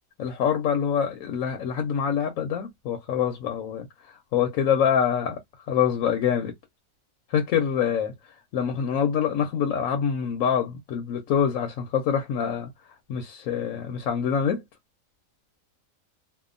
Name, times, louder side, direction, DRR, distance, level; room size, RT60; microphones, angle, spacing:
voice 1, 0.2-5.4 5.7-6.5 7.3-8.1 8.5-12.7 13.1-14.6, left 8 dB, 85° left, 1.0 m, -25 dB
2.8 x 2.3 x 2.4 m
omnidirectional pair, 1.4 m